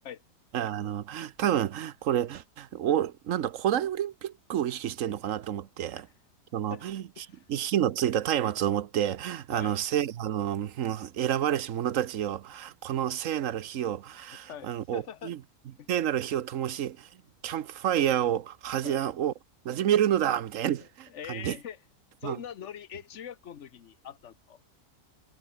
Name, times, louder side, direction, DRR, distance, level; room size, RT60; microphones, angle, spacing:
voice 1, 0.5-6.1 6.5-15.4 15.9-17.1 17.4-19.3 19.6-21.6 22.2-22.4, right 10 dB, 60° right, 1.1 m, -29 dB
voice 2, 14.5-15.3 15.8-15.9 18.8-19.0 21.1-21.8 22.2-24.6, left 9 dB, 50° left, 1.2 m, -42 dB
omnidirectional pair, 1.7 m